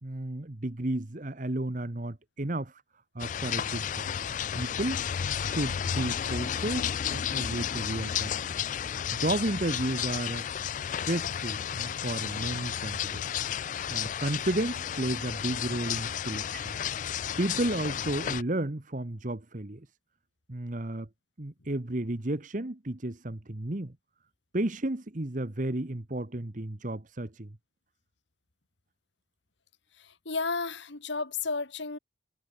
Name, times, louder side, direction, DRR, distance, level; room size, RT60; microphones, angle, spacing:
voice 1, 0.0-2.8 3.1-4.1 4.5-5.0 5.4-8.5 9.1-10.4 10.8-13.2 13.9-16.7 17.4-19.9 20.5-21.1 21.4-24.0 24.5-27.6, right 1 dB, 40° right, 1.2 m, -33 dB
sound 1, 3.2-18.4, left 9 dB, 40° left, 0.3 m, -32 dB
voice 2, 30.0-32.0, left 4 dB, 70° left, 2.0 m, -33 dB
head